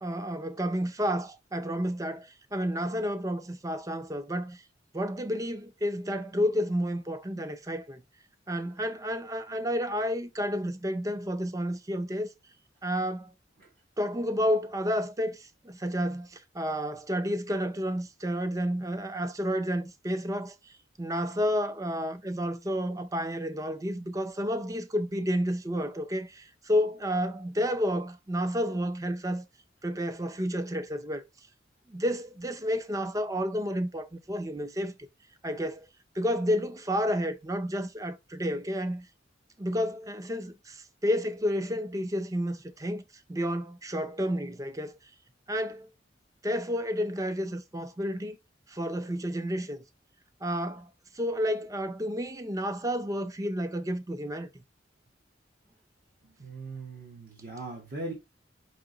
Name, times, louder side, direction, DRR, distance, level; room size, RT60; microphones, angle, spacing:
voice 1, 0.0-4.6 4.9-8.0 8.5-12.3 12.8-13.3 14.0-29.4 29.8-31.2 31.9-34.9 35.4-35.9 36.2-39.1 39.6-43.0 43.3-45.0 45.5-45.9 46.4-48.4 48.7-49.8 50.4-50.9 51.1-54.5, equal, 20° right, 0.5 m, -31 dB
voice 2, 56.2-58.1, right 2 dB, 50° right, 1.2 m, -40 dB
5.0 x 2.8 x 3.8 m
head